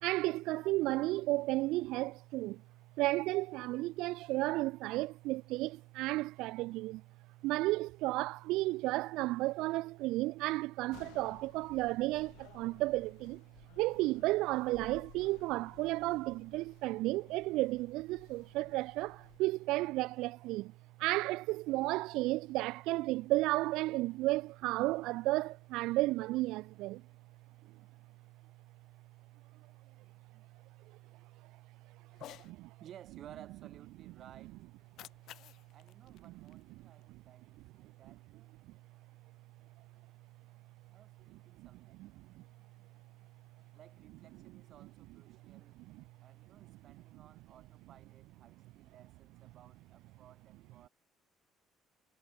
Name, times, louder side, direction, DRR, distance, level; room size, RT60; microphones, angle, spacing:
voice 1, 0.0-2.6 3.0-7.0 7.4-13.4 13.8-20.7 21.0-27.0 41.6-41.7 42.0-42.1 42.4-42.5 45.9-46.0, right 19 dB, 85° right, 0.3 m, -33 dB
sound 1, 10.9-19.4, left 24 dB, 90° left, 4.9 m, -59 dB
Cat, 32.1-32.5 34.7-37.1, left 13 dB, 70° left, 3.1 m, -54 dB
voice 2, 32.8-34.6 35.7-38.5 40.9-42.1 43.7-45.8 46.2-50.9, right 11 dB, 60° right, 4.0 m, -58 dB
cardioid pair, 100°, 0 cm